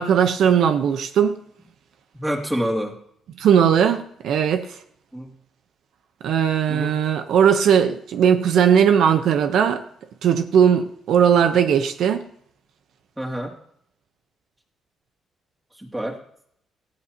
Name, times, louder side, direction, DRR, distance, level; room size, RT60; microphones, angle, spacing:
voice 1, 0.0-1.4 3.4-4.7 6.2-9.8 10.2-12.2, right 8 dB, 70° right, 1.0 m, -18 dB
voice 2, 2.2-3.0 5.1-5.3 6.7-7.0 13.2-13.5 15.8-16.2, equal, 10° right, 2.7 m, -27 dB
17.5 x 16.5 x 3.0 m
cardioid pair, 120°, 0 cm